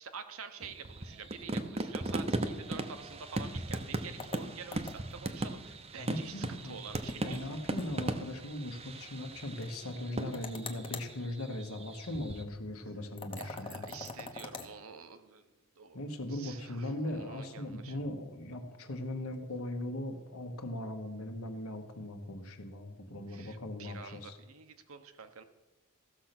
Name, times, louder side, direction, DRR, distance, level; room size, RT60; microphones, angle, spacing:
voice 1, 0.0-7.4 13.4-15.5 15.8-16.0 16.3-18.0 23.3-25.4, right 5 dB, 65° right, 9 dB, 0.9 m, -48 dB
sound 1, 0.6-12.4, right 2 dB, 30° right, 0.7 m, -38 dB
sound 2, 4.2-5.2 7.1-7.5 7.8-7.9 8.2-8.3 10.3-11.1 13.2-14.7, left 3 dB, 25° left, 0.9 m, -43 dB
voice 2, 6.0-6.8 7.2-13.8 15.9-24.4, left 1 dB, 70° left, 5 dB, 1.4 m, -39 dB
14.5 x 6.7 x 6.0 m, 1.1 s
head